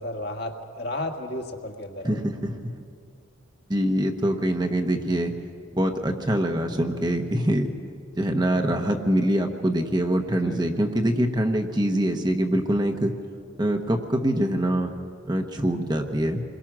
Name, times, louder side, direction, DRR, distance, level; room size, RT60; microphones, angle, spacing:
voice 1, 0.0-2.2 8.5-8.6 10.3-10.8, left 1 dB, 50° left, 3 dB, 1.8 m, -34 dB
voice 2, 2.0-2.8 3.7-5.3 5.7-7.7 8.2-13.1 13.6-14.9 15.3-16.4, right 1 dB, 20° right, 4 dB, 1.1 m, -24 dB
27.5 x 22.0 x 6.1 m, 2.3 s
head